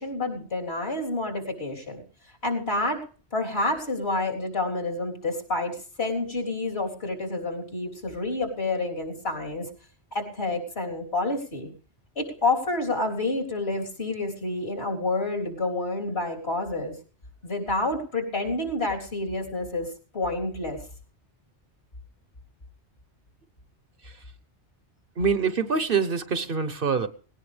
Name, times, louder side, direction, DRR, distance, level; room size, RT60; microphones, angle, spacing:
voice 1, 0.0-2.0 2.4-3.0 3.3-9.7 10.1-11.7 12.2-16.9 17.4-20.8, left 2 dB, 65° left, 2 dB, 3.9 m, -29 dB
voice 2, 25.2-27.1, right 5 dB, 55° right, 13 dB, 1.2 m, -25 dB
18.5 x 17.5 x 3.4 m, 0.38 s
omnidirectional pair, 1.1 m